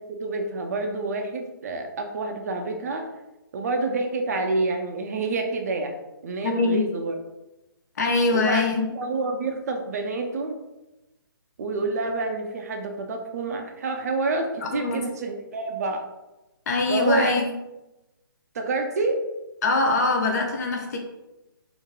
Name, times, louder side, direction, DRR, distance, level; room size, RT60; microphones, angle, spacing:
voice 1, 0.1-3.1 3.5-6.0 6.2-7.1 8.3-10.6 11.6-16.0 16.9-17.4 18.5-19.2, right 3 dB, 45° right, 4 dB, 0.4 m, -28 dB
voice 2, 6.4-6.8 8.0-8.8 14.6-15.0 16.7-17.5 19.6-21.0, left 3 dB, 45° left, 2 dB, 0.5 m, -23 dB
2.9 x 2.4 x 2.2 m, 0.99 s
hypercardioid pair, 145°, 12 cm